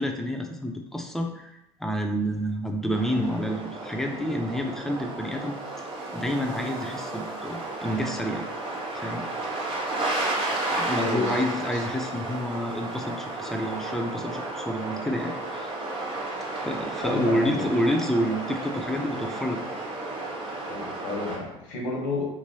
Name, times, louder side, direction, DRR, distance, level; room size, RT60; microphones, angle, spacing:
voice 1, 0.0-1.5 1.8-5.6 6.1-8.5 8.9-9.3 10.7-15.7 16.6-19.7, equal, ahead, 3 dB, 0.6 m, -29 dB
sound 1, 2.9-21.4, right 2 dB, 35° right, 1.1 m, -33 dB
voice 2, 11.0-11.4 11.7-11.8 17.0-17.7 20.7-22.3, left 3 dB, 75° left, -1 dB, 1.1 m, -31 dB
3.2 x 2.9 x 2.7 m, 0.84 s
hypercardioid pair, 80°, 15 cm